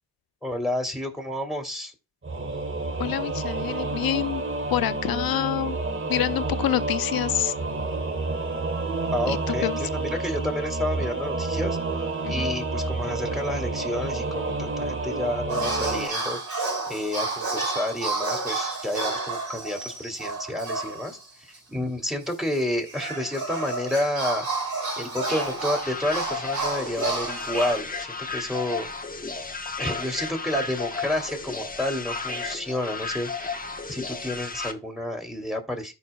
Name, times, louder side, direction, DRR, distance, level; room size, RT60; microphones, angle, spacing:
voice 1, 0.4-1.9 9.1-11.8 12.3-21.2 21.7-24.5 25.0-28.9 29.8-35.9, left 1 dB, ahead, 2.7 m, -30 dB
Singing / Musical instrument, 2.2-16.1, right 2 dB, 35° right, 1.3 m, -29 dB
voice 2, 3.0-4.4 4.7-5.8 6.1-7.5 9.3-9.8 12.2-12.5, left 12 dB, 70° left, 0.6 m, -27 dB
sound 1, 15.5-21.2 21.5-21.6 22.5-27.8, right 3 dB, 70° right, 2.9 m, -30 dB
sound 2, 25.2-34.7, left 4 dB, 25° left, 1.1 m, -33 dB
13.5 x 4.8 x 2.3 m
supercardioid pair, 40°, 37 cm